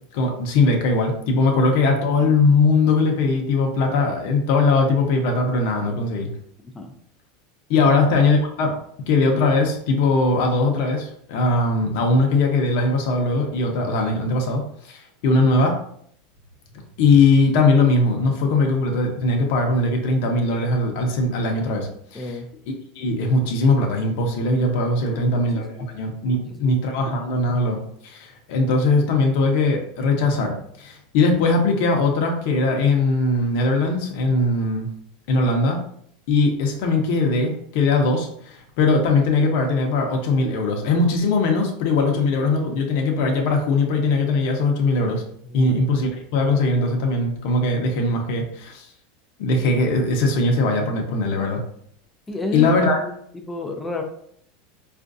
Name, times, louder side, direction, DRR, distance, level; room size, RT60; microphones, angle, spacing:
voice 1, 0.1-6.3 7.7-8.7 9.1-15.8 17.0-22.4 22.7-34.9 35.3-35.8 36.3-45.2 45.5-48.8 49.4-51.6 52.5-53.0, left 3 dB, 65° left, 2 dB, 0.8 m, -20 dB
voice 2, 22.1-22.5 25.0-25.4 25.7-25.9 26.3-26.8 45.5-45.8 52.3-54.0, left 3 dB, 15° left, 3 dB, 0.6 m, -32 dB
4.3 x 2.5 x 2.6 m, 0.66 s
supercardioid pair, 120°, 0 cm